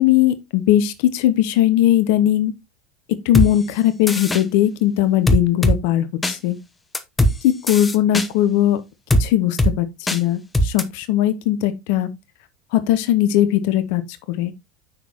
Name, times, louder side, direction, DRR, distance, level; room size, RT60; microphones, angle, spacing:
voice 1, 0.0-2.5 3.3-6.6 7.4-8.8 9.2-9.9 10.1-12.1 12.7-14.0 14.3-14.5, left 12 dB, 60° left, 0.8 m, -19 dB
sound 1, 3.3-3.5 4.1-4.4 5.3-5.8 6.2-6.4 6.9-7.3 7.7-8.3 9.1-9.2 9.6-9.7 10.1-10.2 10.5-10.8, equal, 15° left, 1.0 m, -18 dB
6.8 x 6.0 x 3.0 m
hypercardioid pair, 85°, 0 cm